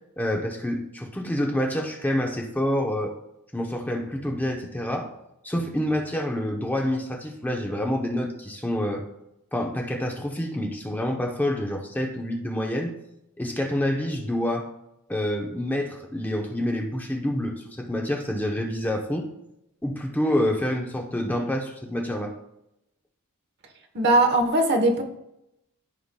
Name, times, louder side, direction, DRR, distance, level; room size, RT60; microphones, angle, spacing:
voice 1, 0.2-3.1 3.5-5.1 5.4-9.0 9.5-12.9 13.4-14.7 15.1-19.3 19.8-22.3, left 1 dB, 10° left, 1 dB, 0.7 m, -27 dB
voice 2, 23.9-25.0, right 2 dB, 50° right, 4 dB, 1.0 m, -20 dB
12.5 x 5.6 x 2.2 m, 0.85 s
head